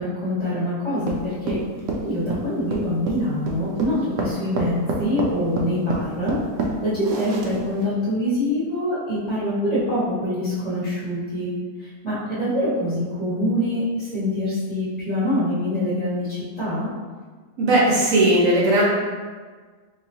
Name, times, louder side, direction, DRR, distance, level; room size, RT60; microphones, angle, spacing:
voice 1, 0.0-1.6 2.0-6.4 6.8-11.5 12.0-16.9, left 1 dB, 5° left, -10 dB, 1.1 m, -25 dB
sound 1, 1.1-7.8, right 3 dB, 85° right, 1.2 m, -28 dB
voice 2, 17.6-18.8, right 1 dB, 60° right, -5 dB, 1.0 m, -17 dB
3.6 x 3.0 x 2.7 m, 1.5 s
omnidirectional pair, 1.8 m